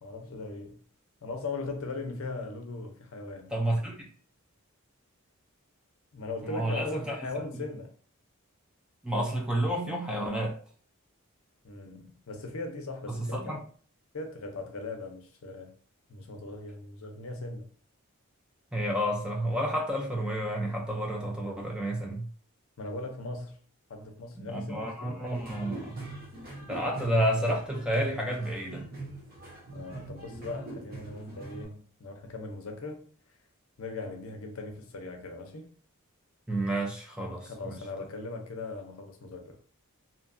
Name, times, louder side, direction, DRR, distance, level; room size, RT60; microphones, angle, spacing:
voice 1, 0.0-0.8 1.2-3.5 6.1-7.9 11.6-13.6 14.1-15.7 16.1-17.7 22.8-23.6 23.9-25.3 29.7-33.1 33.8-35.7 37.5-39.6, left 3 dB, 70° left, 0.5 m, -39 dB
voice 2, 3.5-4.1 6.4-7.2 7.5-7.6 9.0-10.6 13.1-13.6 18.7-22.3 24.4-26.0 26.7-28.9 36.5-37.8, right 1 dB, 5° right, 0.3 m, -30 dB
sound 1, 25.3-31.6, right 2 dB, 40° right, 1.0 m, -43 dB
2.7 x 2.2 x 2.5 m
head